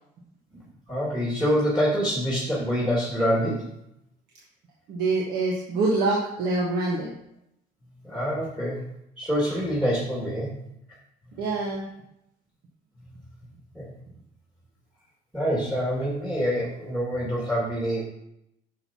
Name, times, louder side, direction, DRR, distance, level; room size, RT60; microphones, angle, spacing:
voice 1, 0.9-3.7 8.0-8.8 9.2-10.5 13.7-13.9 15.3-18.0, equal, 5° right, -5 dB, 2.4 m, -26 dB
voice 2, 4.9-7.1 11.4-11.9, right 3 dB, 70° right, -3 dB, 1.5 m, -25 dB
8.9 x 6.6 x 3.0 m, 0.79 s
cardioid pair, 110°, 17 cm